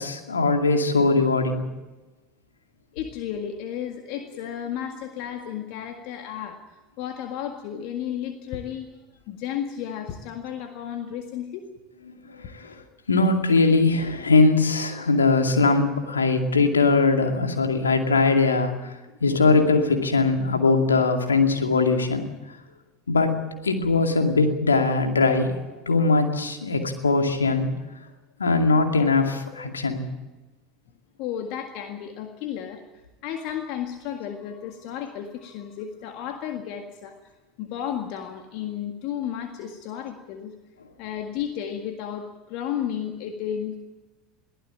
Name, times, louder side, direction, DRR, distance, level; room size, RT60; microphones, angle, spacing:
voice 1, 0.0-1.6 12.1-18.9 19.2-22.2 23.1-23.3 23.6-25.5 25.9-27.7 28.4-30.0, left 3 dB, 85° left, 4 dB, 2.4 m, -21 dB
voice 2, 2.9-8.9 9.3-11.7 31.2-37.3 37.6-40.5 41.0-43.8, left 9 dB, 55° left, 5 dB, 1.8 m, -33 dB
22.5 x 15.5 x 8.8 m, 1.1 s
figure-of-eight pair, 75°, 0 cm